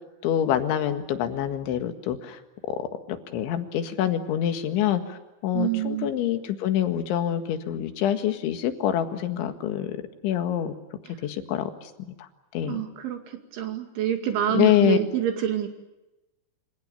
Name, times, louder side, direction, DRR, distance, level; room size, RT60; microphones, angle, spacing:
voice 1, 0.2-2.4 2.7-10.0 10.2-10.7 11.2-11.9 12.2-12.8 14.5-15.0, left 10 dB, 75° left, 8 dB, 4.1 m, -26 dB
voice 2, 5.5-6.1 12.7-15.7, right 10 dB, 70° right, 5 dB, 4.6 m, -27 dB
28.0 x 27.0 x 7.1 m, 1.0 s
omnidirectional pair, 5.7 m